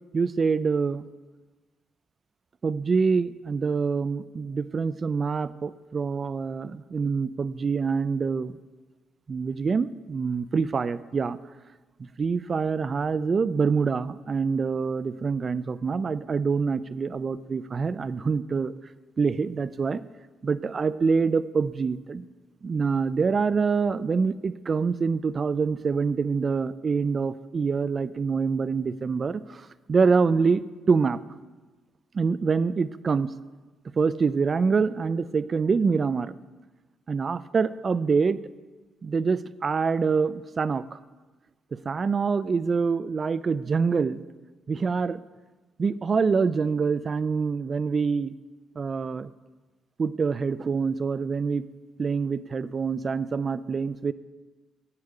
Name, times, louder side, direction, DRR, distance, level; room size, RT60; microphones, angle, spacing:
voice 1, 0.1-1.1 2.6-8.5 9.3-11.4 12.0-18.7 19.2-20.0 20.4-22.3 22.6-31.2 32.1-33.3 34.0-36.3 37.1-38.4 39.0-41.0 41.7-44.2 44.7-45.2 45.8-48.3 48.8-49.3 50.0-51.6 52.0-54.1, right 5 dB, 40° right, 16 dB, 0.4 m, -25 dB
9.7 x 8.2 x 4.9 m, 1.2 s
cardioid pair, 90°, 0 cm